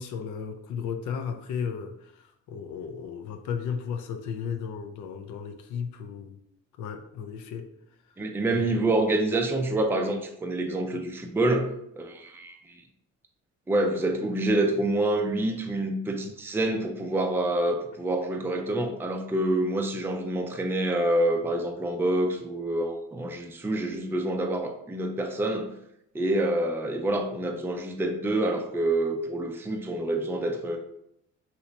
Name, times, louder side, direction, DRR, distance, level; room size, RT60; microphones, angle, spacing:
voice 1, 0.0-6.4 6.8-7.7 8.5-8.9, left 7 dB, 80° left, 6 dB, 0.5 m, -35 dB
voice 2, 8.2-12.8 13.7-25.7 26.1-30.8, right 1 dB, 10° right, 4 dB, 0.4 m, -27 dB
2.8 x 2.7 x 3.2 m, 0.77 s
cardioid pair, 90°, 30 cm